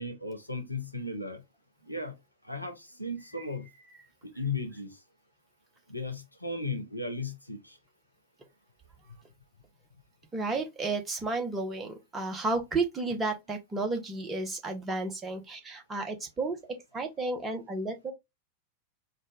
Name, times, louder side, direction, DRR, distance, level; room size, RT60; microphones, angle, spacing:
voice 1, 0.0-1.4 1.9-2.1 2.4-3.7 4.2-5.0 5.9-7.8, left 2 dB, 90° left, 0.7 m, -36 dB
voice 2, 10.3-18.1, right 3 dB, 15° right, 1.1 m, -32 dB
4.4 x 2.5 x 3.8 m
figure-of-eight pair, 90°, 0 cm